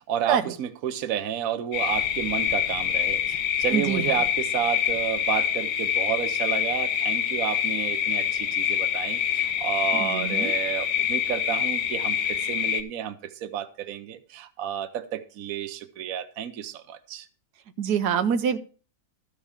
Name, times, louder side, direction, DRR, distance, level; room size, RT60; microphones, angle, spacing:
voice 1, 0.0-17.3, right 10 dB, 65° right, 1.2 m, -31 dB
sound 1, 1.7-12.8, left 9 dB, 85° left, 1.7 m, -26 dB
voice 2, 3.7-4.2 9.9-10.5 17.8-18.6, right 7 dB, 90° right, 1.4 m, -25 dB
13.0 x 4.6 x 7.3 m
omnidirectional pair, 1.7 m